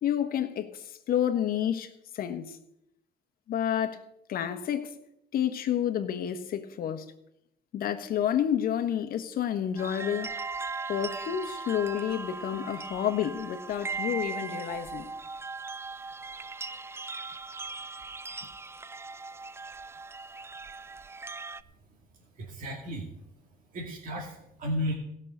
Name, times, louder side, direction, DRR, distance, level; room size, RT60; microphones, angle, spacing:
voice 1, 0.0-2.6 3.5-5.0 5.3-7.1 7.7-10.3 10.9-15.1, left 9 dB, 60° left, 1.3 m, -30 dB
sound 1, 9.8-21.6, right 4 dB, 15° right, 0.4 m, -38 dB
voice 2, 22.3-23.1 23.7-24.9, equal, 50° right, 2.6 m, -33 dB
16.5 x 6.4 x 6.7 m
cardioid pair, 110°, 17 cm